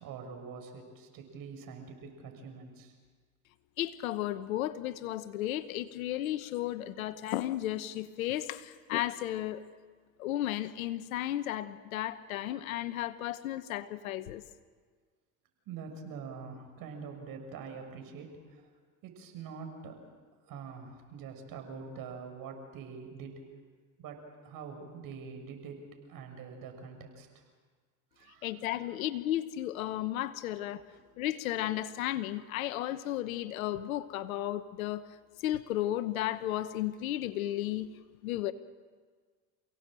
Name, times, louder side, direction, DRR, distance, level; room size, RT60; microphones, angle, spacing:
voice 1, 0.0-2.9 15.7-18.6 19.0-19.9 20.5-23.4 24.0-25.8 26.1-27.3 28.1-28.8 30.9-31.0, right 5 dB, 55° right, 5 dB, 6.2 m, -45 dB
voice 2, 3.8-9.6 10.2-14.4 28.4-30.8 31.2-35.1 35.4-38.5, left 13 dB, 90° left, 13 dB, 1.1 m, -34 dB
29.0 x 17.5 x 7.6 m, 1.5 s
supercardioid pair, 95°, 40 cm